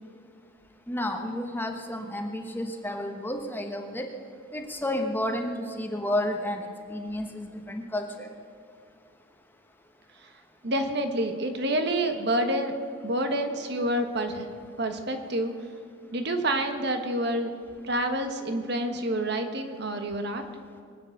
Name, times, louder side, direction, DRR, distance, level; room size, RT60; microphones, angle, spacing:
voice 1, 0.9-4.1 4.5-8.3, left 1 dB, 10° left, 4 dB, 1.1 m, -31 dB
voice 2, 10.6-12.7 13.0-14.5 14.8-15.5 16.1-17.6 17.8-20.4, right 1 dB, 55° right, 6 dB, 1.4 m, -28 dB
23.0 x 9.2 x 6.6 m, 2.2 s
head